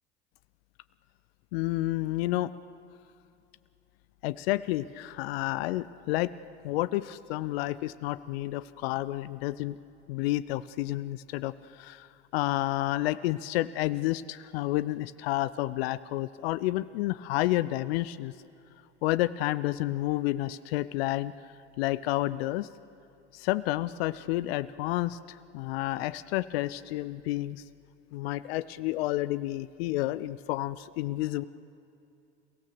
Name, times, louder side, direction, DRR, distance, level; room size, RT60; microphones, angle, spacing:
voice 1, 1.5-2.5 4.2-6.3 6.6-9.8 10.1-18.3 19.0-21.3 21.8-22.7 23.3-27.6 28.1-31.4, left 16 dB, 60° left, 15 dB, 0.7 m, -30 dB
29.0 x 17.0 x 7.0 m, 2.6 s
figure-of-eight pair, 75°, 34 cm